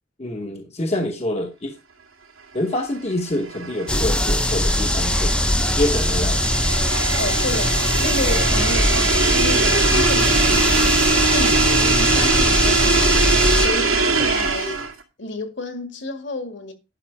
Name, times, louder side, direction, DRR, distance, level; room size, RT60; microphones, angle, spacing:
voice 1, 0.2-1.8 2.5-5.4 5.7-6.4, left 1 dB, 30° left, 1.0 m, -26 dB
sound 1, 3.1-15.0, right 4 dB, 85° right, 1.9 m, -22 dB
sound 2, 3.9-13.7, left 1 dB, 5° left, 0.7 m, -21 dB
voice 2, 7.2-14.9 15.2-16.7, left 2 dB, 60° left, 1.9 m, -31 dB
11.0 x 6.2 x 4.7 m
head